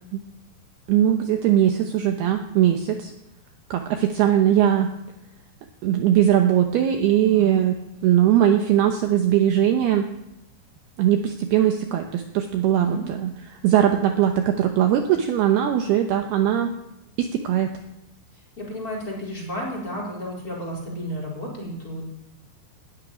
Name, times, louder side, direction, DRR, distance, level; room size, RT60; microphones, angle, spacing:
voice 1, 0.9-3.1 3.7-4.9 5.8-7.8 8.0-10.1 11.0-16.7 17.2-17.7, right 10 dB, 85° right, 5 dB, 2.2 m, -20 dB
voice 2, 7.1-7.5 12.7-13.0 18.6-22.1, equal, 20° left, -2 dB, 4.0 m, -32 dB
13.0 x 11.0 x 10.0 m, 0.89 s
omnidirectional pair, 5.9 m